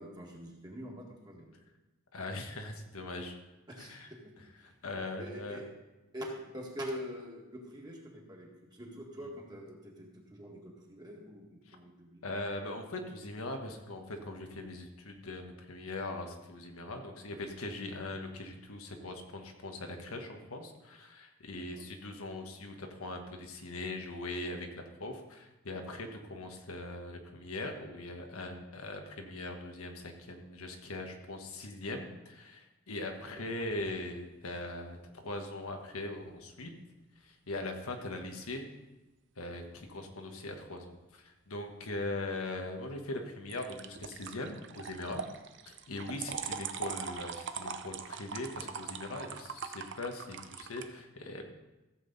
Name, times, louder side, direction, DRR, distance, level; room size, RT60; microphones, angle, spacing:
voice 1, 0.0-1.5 3.7-4.0 4.2-4.3 4.6-4.8 5.2-5.6 6.1-12.2 17.9-18.0 21.5-21.9 33.3-33.5 46.3-46.4, equal, 20° right, -2 dB, 1.9 m, -45 dB
voice 2, 2.1-3.3 3.8-4.1 4.6-5.6 11.7-11.8 12.2-36.7 37.2-38.7 39.4-45.2 45.7-51.5, left 2 dB, 85° left, 4 dB, 1.4 m, -41 dB
sound 1, 33.2-33.9 43.5-50.9, right 6 dB, 55° right, 0.6 m, -42 dB
14.5 x 7.7 x 4.0 m, 1.1 s
head